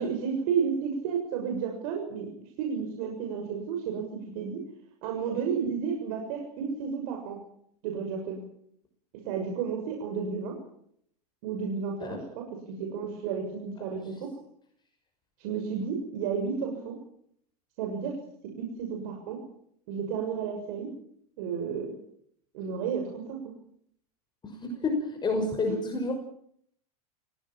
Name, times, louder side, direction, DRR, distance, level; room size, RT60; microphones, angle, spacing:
voice 1, 0.0-2.3 2.6-4.6 5.0-7.4 7.8-8.4 9.2-10.5 11.4-14.3 15.4-17.0 17.8-18.2 18.6-19.4 19.9-20.9 21.4-21.9 22.5-23.5 25.7-25.8, right 6 dB, 65° right, 2 dB, 6.7 m, -32 dB
voice 2, 24.4-26.1, left 3 dB, 20° left, 4 dB, 5.9 m, -30 dB
29.0 x 17.5 x 7.5 m, 0.68 s
hypercardioid pair, 110°, 20 cm